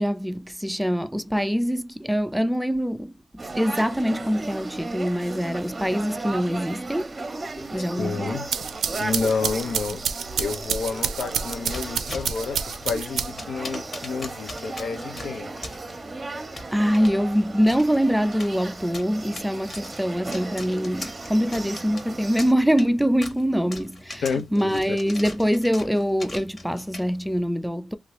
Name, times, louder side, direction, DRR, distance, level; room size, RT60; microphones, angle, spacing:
voice 1, 0.0-7.1 7.7-8.4 16.7-28.0, equal, ahead, 0.3 m, -24 dB
sound 1, 3.4-22.5, right 3 dB, 30° right, 0.7 m, -36 dB
voice 2, 8.0-8.5 9.0-10.0 10.4-15.5 24.2-25.0, left 5 dB, 75° left, 0.5 m, -29 dB
sound 2, 8.3-13.6, right 7 dB, 90° right, 0.4 m, -29 dB
sound 3, 11.6-27.4, left 2 dB, 40° left, 1.0 m, -42 dB
3.0 x 2.4 x 3.0 m
cardioid pair, 85°, 0 cm